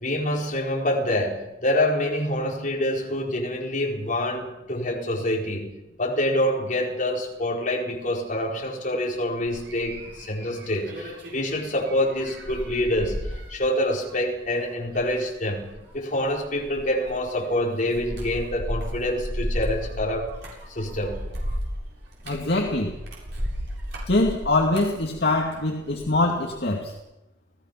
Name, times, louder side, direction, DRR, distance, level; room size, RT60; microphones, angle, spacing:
voice 1, 0.0-5.7 6.0-13.2 13.5-20.3 20.7-21.3 24.0-24.1, left 1 dB, 45° left, -2 dB, 4.7 m, -26 dB
sound 1, 9.4-26.2 26.5-26.9, equal, 65° right, 7.8 m, -35 dB
voice 2, 22.3-22.9 24.1-26.9, left 2 dB, 60° left, 0 dB, 2.4 m, -23 dB
29.0 x 17.5 x 5.9 m, 0.96 s
head